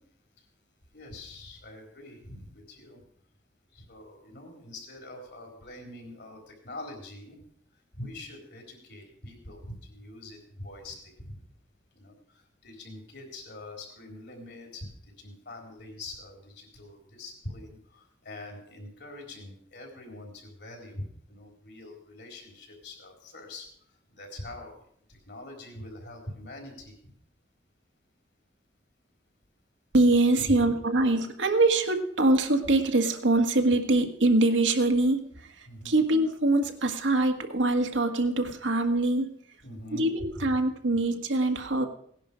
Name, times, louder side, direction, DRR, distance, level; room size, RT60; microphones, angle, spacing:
voice 1, 0.9-3.0 3.7-7.4 7.9-11.4 11.9-14.9 15.2-23.7 24.1-24.7 25.1-27.1 30.4-30.7 35.7-36.0 39.6-40.0 40.3-40.6, left 1 dB, 65° left, 1 dB, 3.9 m, -44 dB
voice 2, 29.9-35.2 35.6-39.3 39.9-41.9, right 2 dB, 85° right, 4 dB, 1.6 m, -24 dB
17.5 x 10.5 x 5.1 m, 0.66 s
head